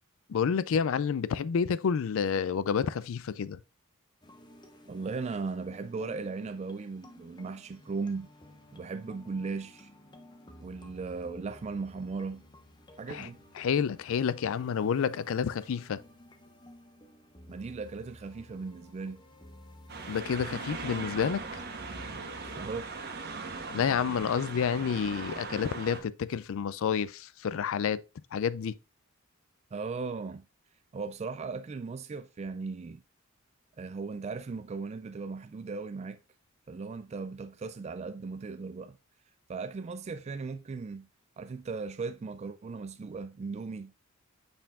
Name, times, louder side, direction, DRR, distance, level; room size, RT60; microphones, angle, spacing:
voice 1, 0.3-3.6 13.1-13.3 13.6-16.0 20.1-21.4 23.7-28.0 28.3-28.7, left 7 dB, 65° left, 0.4 m, -29 dB
sound 1, 4.2-21.6, left 1 dB, 20° left, 0.9 m, -54 dB
voice 2, 4.9-8.3 8.7-9.9 10.6-12.4 13.0-13.4 17.5-19.2 22.4-23.0 29.7-30.5 30.9-33.0 33.8-36.2 36.7-39.0 39.5-41.1 41.4-43.9, right 4 dB, 30° right, 0.3 m, -37 dB
sound 2, 19.9-26.0, right 3 dB, 50° right, 1.3 m, -39 dB
6.9 x 5.6 x 2.4 m
head